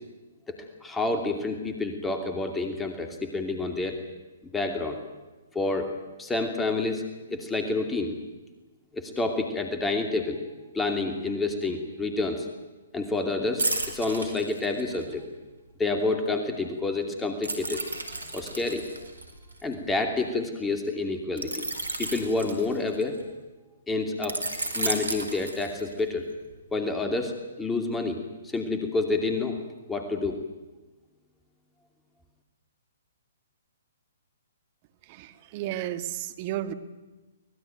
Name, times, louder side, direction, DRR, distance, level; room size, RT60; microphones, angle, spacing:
voice 1, 0.8-4.0 4.5-5.0 5.5-5.9 6.2-7.0 7.3-8.1 8.9-10.4 10.7-12.5 12.9-15.2 15.8-17.8 18.3-18.8 19.6-21.6 22.0-23.2 23.9-24.4 24.7-26.2 26.7-29.6 29.9-30.4, left 3 dB, 10° left, 4 dB, 2.6 m, -28 dB
sound 1, 13.6-15.1 17.4-20.2 21.4-23.2 24.2-26.1 26.5-26.7, right 2 dB, 80° right, 4.7 m, -33 dB
voice 2, 35.1-36.7, right 13 dB, 40° right, 9 dB, 1.8 m, -33 dB
24.5 x 20.0 x 9.3 m, 1.2 s
figure-of-eight pair, 125°, 0 cm